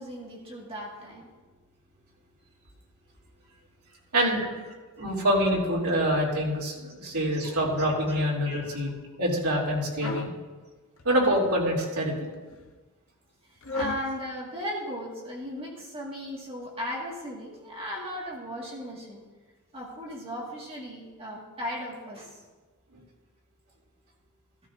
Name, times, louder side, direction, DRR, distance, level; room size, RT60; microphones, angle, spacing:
voice 1, 0.0-1.5 7.4-7.6 8.1-8.2 8.4-8.8 13.5-19.2 19.7-22.4, equal, 25° right, -3 dB, 1.9 m, -37 dB
voice 2, 5.0-8.9 9.2-10.3 11.0-12.3, equal, 80° right, -4 dB, 3.0 m, -25 dB
sound 1, 10.0-10.4 11.0-11.7 12.3-12.7 13.6-14.1, left 3 dB, 65° left, 0.8 m, -35 dB
15.0 x 13.0 x 2.6 m, 1.3 s
head